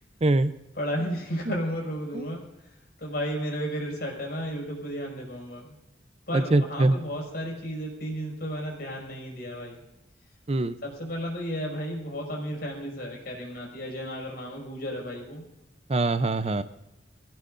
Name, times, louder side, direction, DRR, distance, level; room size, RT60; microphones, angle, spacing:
voice 1, 0.2-0.5 2.1-2.3 6.3-7.0 10.5-10.7 15.9-16.6, right 2 dB, 35° right, 12 dB, 0.6 m, -23 dB
voice 2, 0.8-2.4 3.0-5.7 6.3-9.8 10.8-15.4, equal, 60° left, -1 dB, 5.5 m, -33 dB
23.0 x 16.5 x 2.6 m, 0.91 s
head